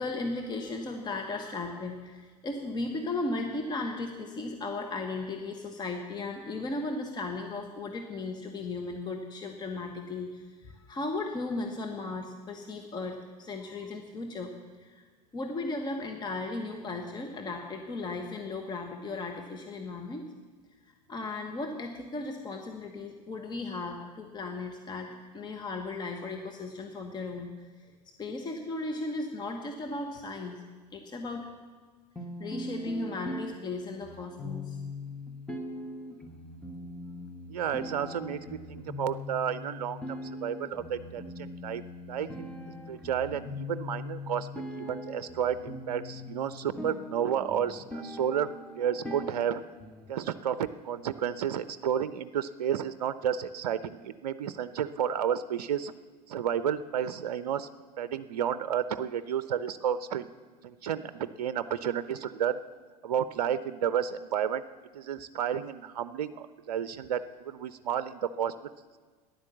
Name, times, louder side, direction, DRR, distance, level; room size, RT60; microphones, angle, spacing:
voice 1, 0.0-14.5 14.8-15.0 15.3-20.3 21.1-27.9 28.2-30.6 30.9-31.5 32.4-34.8, left 3 dB, 20° left, 3 dB, 1.3 m, -36 dB
sound 1, 32.2-50.1, left 1 dB, 5° left, 1.6 m, -41 dB
voice 2, 37.5-49.6 50.1-55.9 56.3-57.7 58.0-60.3 60.6-62.6 63.0-64.6 64.9-69.0, right 9 dB, 65° right, 14 dB, 0.6 m, -32 dB
14.0 x 10.5 x 7.2 m, 1.4 s
figure-of-eight pair, 85°, 21 cm